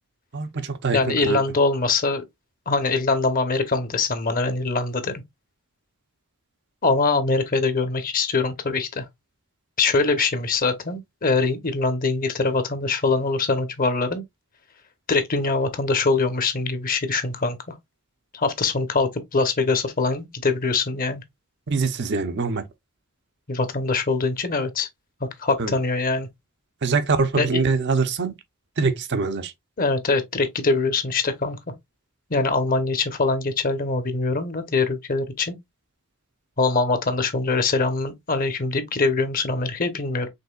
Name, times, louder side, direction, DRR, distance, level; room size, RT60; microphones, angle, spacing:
voice 1, 0.3-1.4 21.7-22.6 25.6-25.7 26.8-28.3 28.8-29.5, right 4 dB, 55° right, 0.6 m, -23 dB
voice 2, 0.9-2.2 2.7-5.2 6.8-9.1 9.8-14.2 15.1-17.8 18.3-21.2 23.5-24.9 25.4-26.3 27.4-27.6 29.8-31.6 32.3-35.6 36.6-40.3, left 3 dB, 40° left, 0.9 m, -23 dB
5.3 x 3.6 x 2.3 m
head